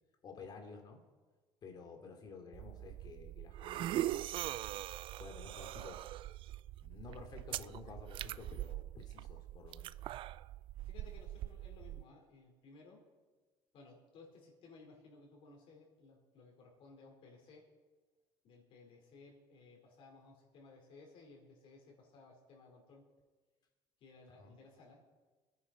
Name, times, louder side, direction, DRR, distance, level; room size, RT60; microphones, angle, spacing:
voice 1, 0.2-1.0 1.6-4.3 5.2-6.1 6.8-9.9 24.3-24.5, left 4 dB, 40° left, 4 dB, 2.8 m, -52 dB
sound 1, 2.5-12.0, right 14 dB, 55° right, 0.3 m, -42 dB
voice 2, 10.8-13.0 13.7-17.7 18.4-23.1 24.0-25.0, left 3 dB, 55° left, 0 dB, 4.7 m, -59 dB
24.5 x 10.5 x 4.5 m, 1.3 s
cardioid pair, 125°, 11 cm